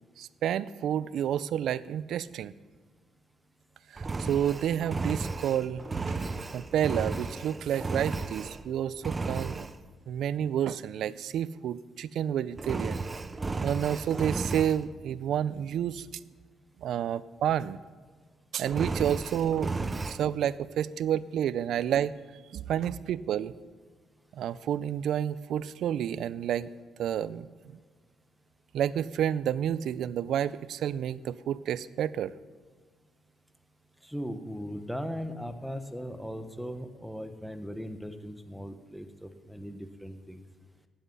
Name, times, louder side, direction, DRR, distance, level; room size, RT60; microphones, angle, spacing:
voice 1, 0.2-2.5 3.9-6.2 6.5-9.7 10.1-13.0 13.6-16.1 16.8-17.8 18.5-19.7 20.0-22.1 22.5-23.5 24.3-26.7 27.0-27.8 28.7-32.3, right 10 dB, 75° right, 18 dB, 0.5 m, -30 dB
Engine, 4.0-8.7 9.0-9.8 12.6-14.8 18.6-20.2, right 3 dB, 30° right, 0.7 m, -34 dB
voice 2, 34.0-40.4, equal, ahead, 8 dB, 1.2 m, -38 dB
15.5 x 10.0 x 5.5 m, 1.5 s
cardioid pair, 90°, 0 cm